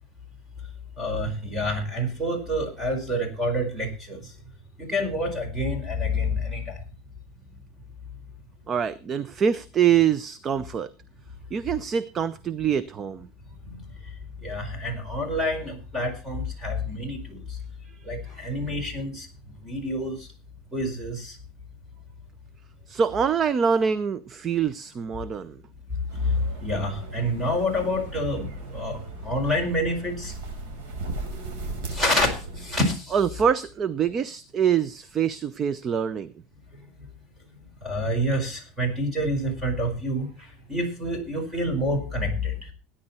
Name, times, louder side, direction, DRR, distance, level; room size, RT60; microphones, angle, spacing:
voice 1, 1.0-4.2 4.8-6.7 13.7-13.8 14.4-17.4 18.1-19.3 19.6-20.1 20.7-21.3 26.6-28.5 28.7-29.0 29.2-30.3 31.9-32.3 32.6-33.0 37.8-40.3 40.7-42.5, equal, 10° right, 5 dB, 4.9 m, -27 dB
voice 2, 8.7-10.9 11.5-13.3 22.9-25.6 33.1-36.3, right 7 dB, 25° right, 17 dB, 0.5 m, -25 dB
sound 1, 26.1-32.8, right 2 dB, 75° right, 5.5 m, -37 dB
17.5 x 10.0 x 4.3 m, 0.33 s
cardioid pair, 165°, 0 cm